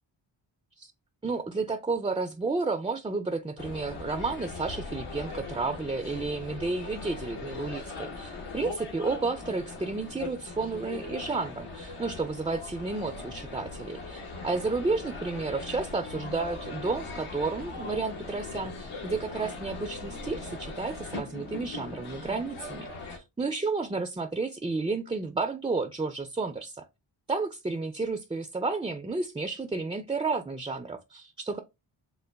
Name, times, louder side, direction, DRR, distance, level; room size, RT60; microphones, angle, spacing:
voice 1, 1.2-26.9 27.3-31.6, right 3 dB, 10° right, 0.3 m, -32 dB
sound 1, 3.6-23.2, left 3 dB, 80° left, 1.2 m, -40 dB
3.8 x 2.1 x 3.3 m
cardioid pair, 45°, 50 cm